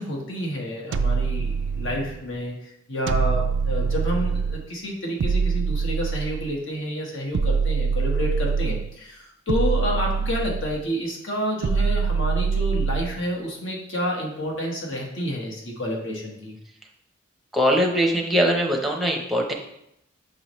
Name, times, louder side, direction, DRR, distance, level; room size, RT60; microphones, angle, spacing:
voice 1, 0.0-2.5 2.9-16.6, equal, 65° left, -1 dB, 1.3 m, -29 dB
sound 1, 0.9-2.2 3.1-4.7 5.2-6.6 7.3-9.0 9.5-10.9 11.6-13.2, right 5 dB, 60° right, 0.4 m, -24 dB
voice 2, 17.5-19.5, equal, ahead, 0 dB, 0.7 m, -21 dB
6.3 x 4.8 x 3.1 m, 0.79 s
head